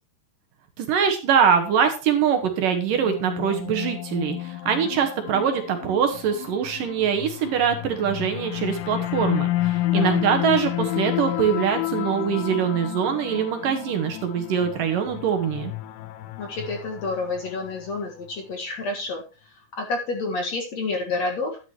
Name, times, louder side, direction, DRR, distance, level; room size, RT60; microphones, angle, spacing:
voice 1, 0.8-15.7, right 7 dB, 65° right, 6 dB, 2.6 m, -23 dB
sound 1, 2.6-18.0, left 16 dB, 85° left, 3.1 m, -30 dB
voice 2, 16.4-19.2 19.8-21.6, left 3 dB, 50° left, 3 dB, 2.3 m, -29 dB
11.5 x 10.5 x 3.0 m, 0.34 s
omnidirectional pair, 4.8 m